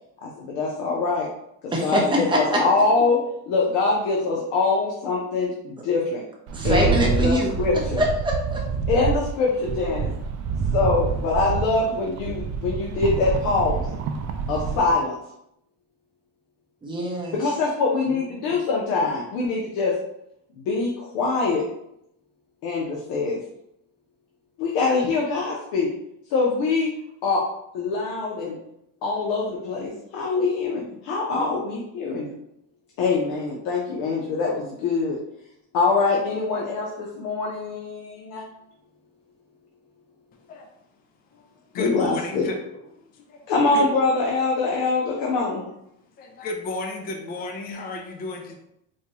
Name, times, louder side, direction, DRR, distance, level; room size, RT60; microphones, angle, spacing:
voice 1, 0.2-1.3 1.6-6.2 6.6-6.9 7.2-8.0 8.9-10.1 10.7-13.9 14.5-15.1 17.3-20.0 20.5-21.6 22.6-23.4 24.6-25.9 26.3-26.9 27.2-27.4 27.7-28.6 29.0-32.3 33.0-35.2 35.7-38.5 41.7-42.5 43.5-45.6, left 3 dB, 75° left, -3 dB, 0.8 m, -24 dB
voice 2, 1.7-2.6 6.5-7.5 8.0-8.6 16.8-17.4, equal, 15° right, -3 dB, 0.9 m, -23 dB
Rattle, 6.5-14.9, right 5 dB, 45° right, 0.4 m, -27 dB
voice 3, 41.7-42.8 43.3-43.4 43.7-43.9 45.1-45.3 45.6-45.7 46.2-48.6, left 2 dB, 25° left, 3 dB, 0.4 m, -33 dB
4.5 x 2.3 x 2.9 m, 0.79 s
cardioid pair, 145°, 36 cm